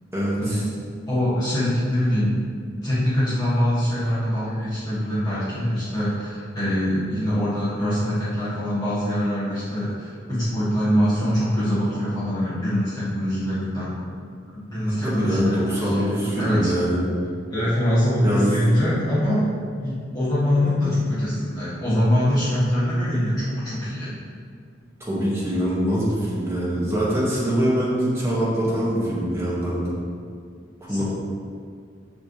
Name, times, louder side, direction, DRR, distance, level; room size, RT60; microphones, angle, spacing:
voice 1, 0.1-0.6 15.0-17.0 18.2-18.6 25.0-29.9 30.8-31.0, equal, 15° right, -8 dB, 2.1 m, -23 dB
voice 2, 1.1-2.4 2.8-14.0 14.5-16.1 16.4-16.7 17.5-19.5 19.8-24.1 30.9-31.0, equal, 20° left, -11 dB, 1.8 m, -23 dB
14.5 x 5.1 x 3.4 m, 2.2 s
head